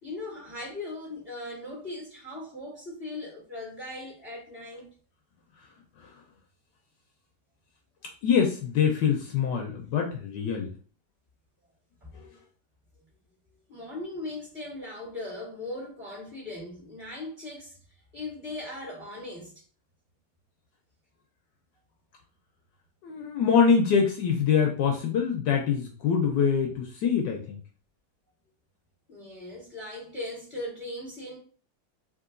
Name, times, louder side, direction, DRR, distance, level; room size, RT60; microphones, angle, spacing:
voice 1, 0.0-4.9 12.0-12.1 13.7-17.8 18.1-19.5 29.1-31.4, left 2 dB, 20° right, 1.9 m, -39 dB
voice 2, 8.2-10.7 12.1-12.2 23.0-27.6, left 6 dB, 75° left, 1.2 m, -24 dB
3.7 x 2.9 x 2.5 m
omnidirectional pair, 2.1 m